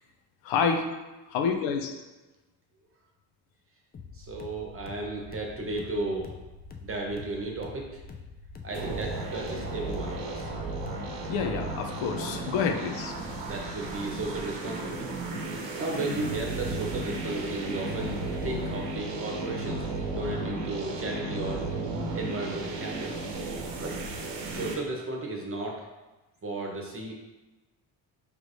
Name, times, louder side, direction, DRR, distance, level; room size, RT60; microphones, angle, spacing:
voice 1, 0.4-0.8 1.3-1.8 11.3-13.1, left 6 dB, 80° left, 5 dB, 0.6 m, -28 dB
sound 1, 3.9-11.3, left 4 dB, 25° left, 0.4 m, -46 dB
voice 2, 4.1-6.3 6.8-8.0 8.6-10.5 12.7-12.9 13.4-15.1 15.8-21.6 22.1-23.3 23.8-24.0 24.5-25.9 26.4-27.1, right 2 dB, 30° right, 0 dB, 0.9 m, -34 dB
sound 2, 8.7-24.7, right 2 dB, 75° right, 0.9 m, -34 dB
4.8 x 3.2 x 2.6 m, 1.1 s
cardioid pair, 90°, 45 cm